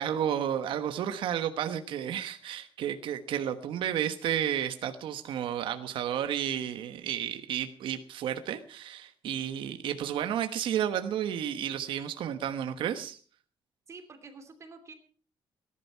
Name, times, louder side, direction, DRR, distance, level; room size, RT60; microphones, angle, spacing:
voice 1, 0.0-13.2, right 10 dB, 70° right, 8 dB, 1.2 m, -32 dB
voice 2, 13.9-14.9, right 4 dB, 35° right, 6 dB, 2.9 m, -48 dB
18.5 x 11.5 x 5.6 m, 0.43 s
cardioid pair, 155°, 9 cm